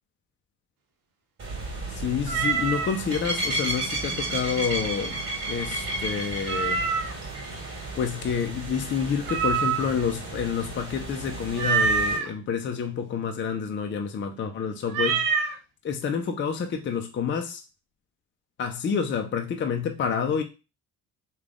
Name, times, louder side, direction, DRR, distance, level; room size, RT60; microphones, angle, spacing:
sound 1, 1.4-12.2, right 2 dB, 35° right, 1.7 m, -33 dB
voice 1, 1.9-5.2 5.5-6.9 8.0-15.6 15.8-17.6 18.6-20.4, left 7 dB, 35° left, 0.6 m, -28 dB
Meow, 2.3-3.0 6.5-7.3 9.3-10.1 11.6-12.3 14.9-15.6, right 5 dB, 80° right, 0.8 m, -25 dB
3.4 x 2.4 x 3.6 m
supercardioid pair, 80°, 33 cm